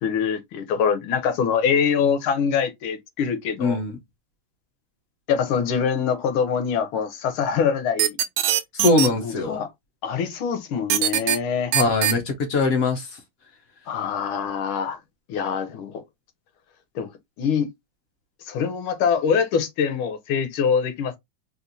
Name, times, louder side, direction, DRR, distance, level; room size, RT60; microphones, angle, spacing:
voice 1, 0.0-3.8 5.3-8.2 9.2-9.7 10.0-11.7 13.9-15.0 15.3-16.0 16.9-17.1 17.4-17.7 18.5-21.2, left 7 dB, 85° left, 1.6 m, -24 dB
voice 2, 3.6-4.0 8.7-9.6 11.7-13.2, left 3 dB, 65° left, 0.9 m, -22 dB
sound 1, 8.0-9.1 10.9-11.4 11.7-12.1, right 11 dB, 80° right, 1.4 m, -20 dB
4.2 x 2.4 x 2.5 m
omnidirectional pair, 2.2 m